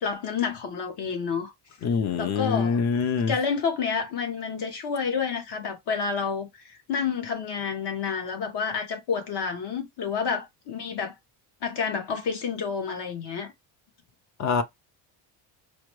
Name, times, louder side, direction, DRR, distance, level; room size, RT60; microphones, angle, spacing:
voice 1, 0.0-1.5 2.2-2.8 3.3-11.1 11.6-13.5, left 6 dB, 55° left, 1.3 m, -29 dB
voice 2, 1.8-3.3 14.4-14.6, left 5 dB, 35° left, 0.6 m, -24 dB
4.8 x 2.2 x 3.1 m
cardioid pair, 170°, 47 cm